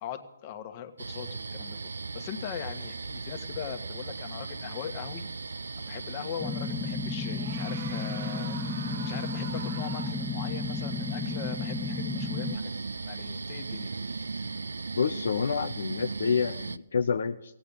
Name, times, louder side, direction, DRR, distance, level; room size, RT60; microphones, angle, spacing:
voice 1, 0.0-5.2 5.8-12.7 13.1-13.9, left 9 dB, 35° left, 7 dB, 1.5 m, -41 dB
sound 1, 1.0-16.8, right 4 dB, 80° right, 0.5 m, -37 dB
sound 2, 5.1-5.2 6.6-6.7 7.2-10.1, right 7 dB, 50° right, 1.0 m, -44 dB
sound 3, 6.4-12.6, left 5 dB, 10° left, 0.6 m, -34 dB
voice 2, 15.0-17.6, left 6 dB, 70° left, 8 dB, 0.6 m, -28 dB
17.0 x 8.5 x 8.9 m, 0.87 s
hypercardioid pair, 140°, 0 cm